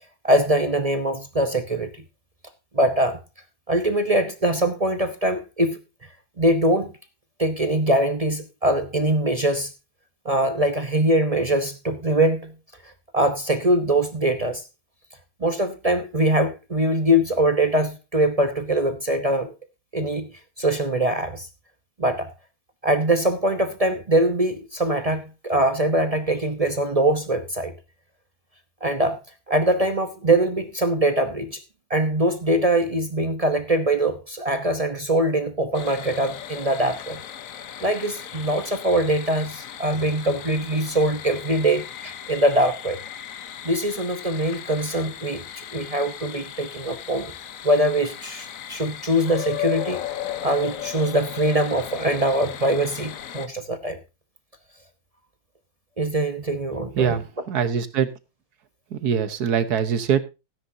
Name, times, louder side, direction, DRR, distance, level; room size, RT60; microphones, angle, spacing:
voice 1, 0.2-1.9 2.7-3.2 3.7-5.8 6.4-6.9 7.4-9.7 10.2-12.5 12.8-14.6 15.4-19.5 19.9-20.3 20.6-21.5 22.0-22.3 22.8-27.7 28.8-29.2 29.5-31.6 31.9-37.2 37.8-43.0 43.6-47.3 47.6-50.0 50.4-54.0 56.0-57.2, right 1 dB, 40° right, 8 dB, 0.5 m, -22 dB
sound 1, 35.7-53.5, left 11 dB, 60° left, 0.9 m, -36 dB
voice 2, 57.0-58.1 58.9-60.2, right 7 dB, 55° right, 11 dB, 1.5 m, -23 dB
17.0 x 10.0 x 2.7 m, 0.27 s
omnidirectional pair, 2.2 m